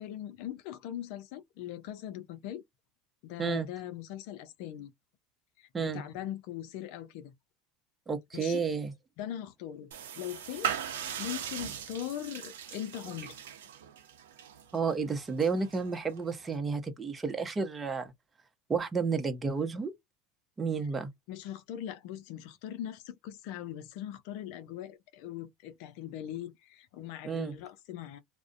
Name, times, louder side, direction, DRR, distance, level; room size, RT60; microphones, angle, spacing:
voice 1, 0.0-2.6 3.2-4.9 5.6-7.3 8.3-8.6 9.2-10.7 11.2-13.4 21.3-28.2, left 11 dB, 65° left, 0.5 m, -40 dB
voice 2, 8.1-8.9 14.7-18.1 18.7-19.9 20.6-21.1 27.2-27.5, right 5 dB, 20° right, 0.7 m, -31 dB
sound 1, 9.9-16.6, right 9 dB, 80° right, 0.6 m, -40 dB
2.4 x 2.1 x 2.4 m
hypercardioid pair, 90°, 0 cm